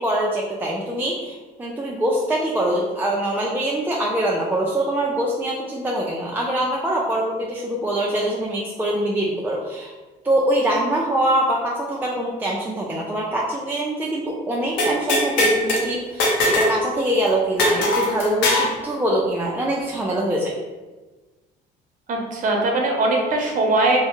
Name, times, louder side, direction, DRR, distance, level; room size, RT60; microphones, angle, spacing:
voice 1, 0.0-9.9 10.2-20.5, right 1 dB, 10° right, -4 dB, 0.4 m, -23 dB
sound 1, 14.8-15.8 16.2-16.8 17.0-17.1 17.6-18.7, left 1 dB, 90° left, 0.8 m, -20 dB
voice 2, 22.1-24.0, right 2 dB, 50° right, 0 dB, 0.8 m, -20 dB
3.4 x 2.1 x 3.0 m, 1.2 s
cardioid pair, 110°, 17 cm